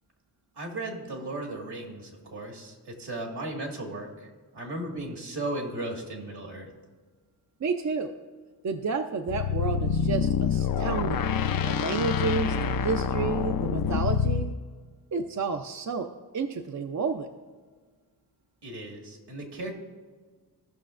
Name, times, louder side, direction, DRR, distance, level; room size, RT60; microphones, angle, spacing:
voice 1, 0.6-6.7 18.6-19.7, right 2 dB, 70° right, 0 dB, 1.9 m, -36 dB
voice 2, 7.6-8.1 8.6-11.2 11.6-14.5 15.1-16.1 16.3-17.3, right 5 dB, 45° right, 6 dB, 0.5 m, -30 dB
sound 1, 9.3-14.5, left 7 dB, 55° left, 0.5 m, -26 dB
16.0 x 5.8 x 2.5 m, 1.5 s
cardioid pair, 60°, 42 cm